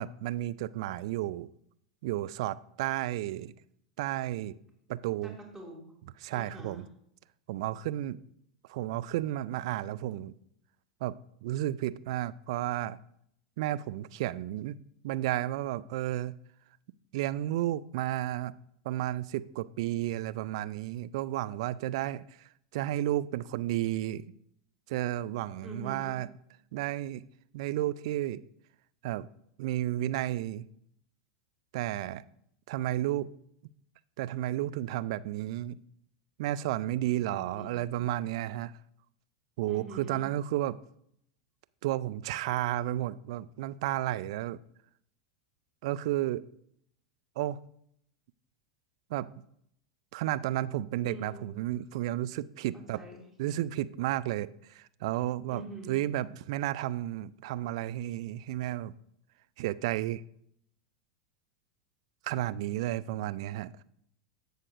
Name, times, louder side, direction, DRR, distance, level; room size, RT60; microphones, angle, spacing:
voice 1, 0.0-1.5 2.0-3.5 4.0-4.6 4.9-5.3 6.2-6.9 7.5-8.2 8.7-10.3 11.0-11.1 11.4-13.0 13.6-14.8 15.0-16.4 17.1-18.5 18.9-22.2 22.7-24.2 24.9-26.3 26.7-27.2 27.5-28.4 29.0-29.3 29.6-30.6 31.7-32.2 32.7-33.3 34.2-35.8 36.4-38.7 39.6-40.8 41.8-44.6 45.8-46.5 47.4-47.6 49.1-49.3 50.1-53.0 53.4-58.9 59.6-60.2 62.2-63.7, right 14 dB, 55° right, 18 dB, 0.3 m, -32 dB
voice 2, 5.2-5.9 6.3-6.8 25.6-26.2 37.1-38.0 39.7-40.3 51.0-51.5 52.7-53.3 55.5-56.0, right 1 dB, ahead, -6 dB, 2.5 m, -45 dB
15.5 x 6.5 x 2.5 m, 0.71 s
figure-of-eight pair, 90°, 3 cm